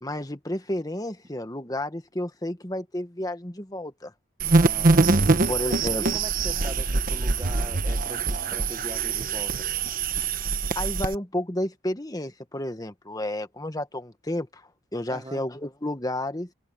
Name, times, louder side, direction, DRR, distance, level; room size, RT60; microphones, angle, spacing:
voice 1, 0.0-4.1 5.5-6.1 10.7-16.5, left 1 dB, 20° left, 1.3 m, -31 dB
sound 1, 4.4-11.1, right 3 dB, 40° right, 1.0 m, -23 dB
voice 2, 4.6-9.6 15.1-15.4, right 1 dB, 20° right, 1.3 m, -41 dB
open air
head